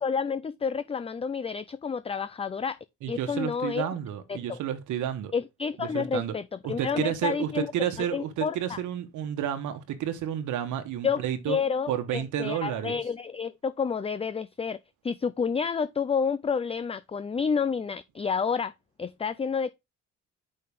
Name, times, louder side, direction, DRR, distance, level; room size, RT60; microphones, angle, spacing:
voice 1, 0.0-2.8 3.1-3.9 4.3-4.6 5.3-7.7 8.0-8.8 11.0-14.8 15.0-18.7 19.0-19.7, left 6 dB, 20° left, 0.4 m, -29 dB
voice 2, 3.0-5.3 5.8-6.3 6.6-11.6 11.9-13.0, right 10 dB, 80° right, 1.2 m, -31 dB
6.6 x 5.5 x 3.4 m
cardioid pair, 90°, 30 cm